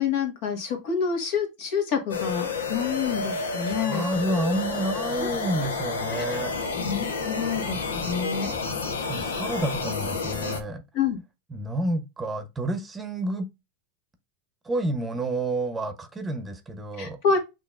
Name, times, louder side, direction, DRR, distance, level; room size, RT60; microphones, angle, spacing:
voice 1, 0.0-4.0 5.2-5.3 6.2-6.4 6.8-8.5 10.9-11.2 17.0-17.4, left 6 dB, 60° left, 1.8 m, -28 dB
sound 1, 2.1-10.6, left 4 dB, 85° left, 0.9 m, -30 dB
voice 2, 3.4-6.5 9.0-10.8 11.5-13.5 14.6-17.2, right 2 dB, 15° right, 0.9 m, -29 dB
6.7 x 2.9 x 2.5 m
hypercardioid pair, 105°, 0 cm